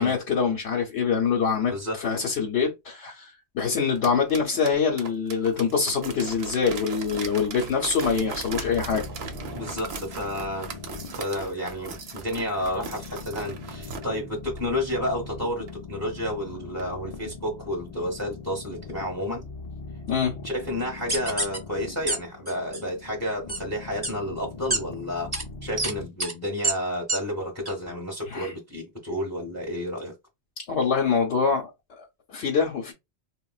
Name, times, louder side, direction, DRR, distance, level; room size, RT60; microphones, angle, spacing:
voice 1, 0.0-9.0 20.1-20.4 28.3-28.5 30.7-31.7 32.0-32.9, left 6 dB, 75° left, 1.0 m, -25 dB
voice 2, 1.7-2.0 9.5-10.7 11.2-19.5 20.4-25.3 25.6-30.2, left 1 dB, 15° left, 0.8 m, -31 dB
sound 1, 3.8-14.1 14.6-14.7 15.1-15.2 15.7-15.8 16.3-16.4 16.8-16.9, right 5 dB, 70° right, 0.8 m, -38 dB
sound 2, 8.2-26.1, left 4 dB, 55° left, 0.4 m, -41 dB
sound 3, 21.1-21.6 22.1-22.2 22.5-22.8 23.5-23.6 24.0-24.1 24.7-24.8 25.3-25.4 25.8-25.9 26.2-26.3 26.6-26.7 27.1-27.2 27.7-27.8, right 2 dB, 25° right, 0.8 m, -26 dB
3.7 x 2.1 x 2.3 m
omnidirectional pair, 1.2 m